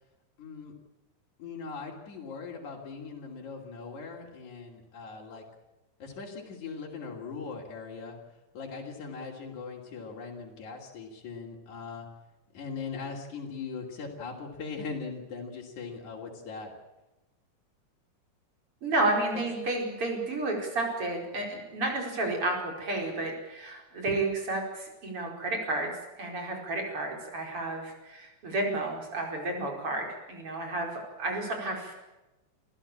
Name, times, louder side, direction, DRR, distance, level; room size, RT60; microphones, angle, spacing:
voice 1, 0.4-0.7 1.4-5.4 6.0-8.2 8.5-12.1 12.5-16.7 19.3-19.4, left 5 dB, 75° left, -1 dB, 4.3 m, -40 dB
voice 2, 18.8-25.9 26.2-31.9, right 2 dB, 45° right, 1 dB, 5.6 m, -31 dB
27.0 x 15.5 x 8.7 m, 1.0 s
omnidirectional pair, 3.4 m